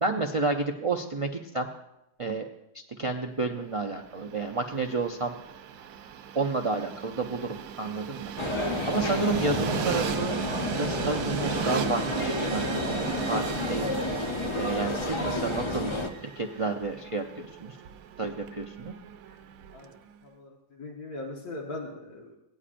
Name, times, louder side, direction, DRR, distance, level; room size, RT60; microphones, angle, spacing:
voice 1, 0.0-1.7 2.2-2.5 2.7-5.4 6.3-8.6 8.9-10.4 10.7-14.0 14.6-15.9 16.2-17.8 18.2-18.9, right 3 dB, 60° right, 2 dB, 0.3 m, -31 dB
Train, 3.9-20.0, right 8 dB, 75° right, 1.0 m, -37 dB
sound 1, 8.4-16.1, left 2 dB, 25° left, 0.7 m, -31 dB
sound 2, 11.6-16.5, right 3 dB, 20° right, 1.4 m, -48 dB
voice 2, 19.7-22.4, left 2 dB, 85° left, -3 dB, 1.8 m, -40 dB
18.0 x 9.8 x 2.5 m, 0.89 s
omnidirectional pair, 1.5 m